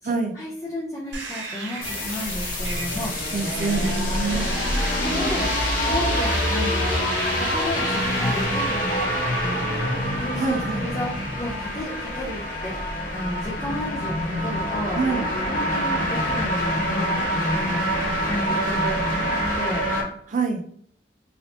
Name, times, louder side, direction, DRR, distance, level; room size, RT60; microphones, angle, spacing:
voice 1, 0.0-3.2 4.2-4.6 4.9-5.5 5.9-9.1 9.4-9.9 10.2-15.0 15.5-17.9 18.2-19.0 19.6-19.9, left 1 dB, 15° left, -6 dB, 0.6 m, -33 dB
sound 1, 1.1-8.4, right 3 dB, 80° right, 0.7 m, -36 dB
sound 2, 1.8-20.0, equal, 50° left, 1.0 m, -25 dB
voice 2, 3.3-4.5 10.3-10.8 14.9-15.2 20.3-20.6, right 4 dB, 45° right, 6 dB, 0.4 m, -25 dB
3.1 x 2.8 x 2.9 m, 0.64 s
head